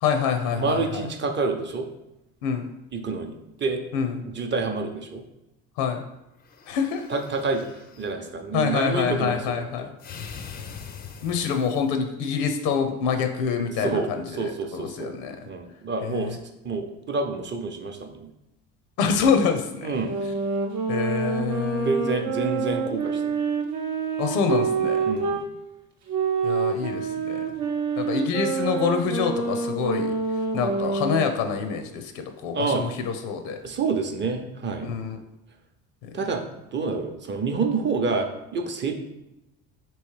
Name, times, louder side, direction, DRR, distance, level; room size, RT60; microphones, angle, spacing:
voice 1, 0.0-1.1 2.4-2.7 3.9-4.2 5.8-6.0 6.7-7.1 8.5-9.9 11.2-15.4 16.0-16.4 19.0-19.9 20.9-21.9 24.2-25.1 26.4-27.4 28.0-30.1 30.5-33.6 34.8-35.2 36.0-36.1, left 6 dB, 85° left, 6 dB, 0.6 m, -26 dB
voice 2, 0.6-1.9 2.9-3.3 3.6-3.8 4.4-5.2 7.1-7.7 8.0-9.7 13.8-15.1 15.5-16.4 16.6-18.3 19.8-20.1 21.8-23.4 25.0-25.4 32.5-32.9 33.6-34.9 36.1-36.4 36.7-38.9, right 4 dB, 30° right, 4 dB, 0.6 m, -28 dB
sound 1, 6.4-8.2 10.0-11.9, left 6 dB, 25° left, 0.4 m, -42 dB
sound 2, 20.0-25.5 26.1-31.3, right 5 dB, 70° right, 0.8 m, -27 dB
3.1 x 3.1 x 4.7 m, 0.91 s
supercardioid pair, 90°, 35 cm